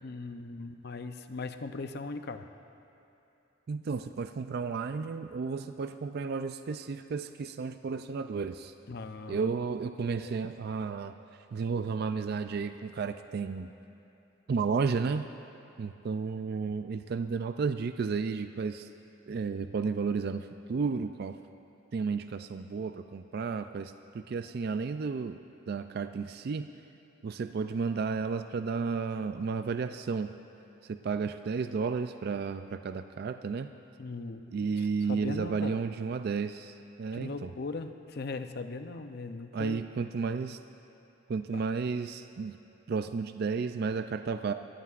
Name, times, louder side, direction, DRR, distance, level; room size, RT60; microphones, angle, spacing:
voice 1, 0.0-2.5 8.9-9.5 10.1-10.4 34.0-35.8 37.1-39.8 41.5-41.6, left 3 dB, 55° left, 8 dB, 0.6 m, -39 dB
voice 2, 3.7-8.7 9.3-11.1 11.5-13.7 14.5-15.3 15.8-18.9 19.3-21.4 21.9-25.4 25.7-26.7 27.2-30.3 30.8-33.7 34.5-37.5 39.5-40.6 41.3-42.6 42.9-44.5, right 5 dB, 50° right, 9 dB, 0.3 m, -32 dB
22.0 x 15.0 x 2.5 m, 2.9 s
head